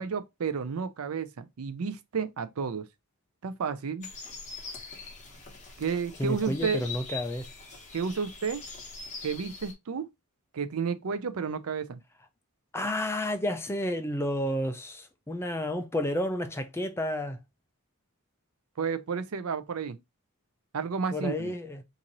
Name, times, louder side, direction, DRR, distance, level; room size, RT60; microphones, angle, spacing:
voice 1, 0.0-2.9 3.4-4.1 5.8-6.8 7.9-8.6 9.2-10.1 10.5-12.0 18.8-20.0 20.7-21.5, right 6 dB, 75° right, 0.5 m, -31 dB
sound 1, 4.0-9.7, left 4 dB, 30° left, 1.0 m, -42 dB
voice 2, 6.2-7.5 12.7-17.4 21.1-21.8, left 1 dB, 10° left, 0.4 m, -31 dB
3.0 x 2.6 x 3.8 m
head